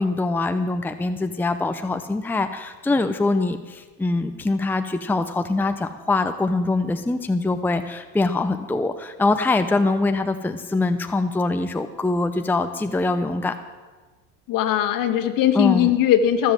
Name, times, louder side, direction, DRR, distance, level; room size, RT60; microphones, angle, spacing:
voice 1, 0.0-13.5 15.5-15.9, left 2 dB, 5° left, 8 dB, 0.7 m, -23 dB
voice 2, 14.5-16.5, left 11 dB, 60° left, 6 dB, 1.9 m, -19 dB
20.5 x 7.5 x 7.6 m, 1.3 s
supercardioid pair, 100°, 37 cm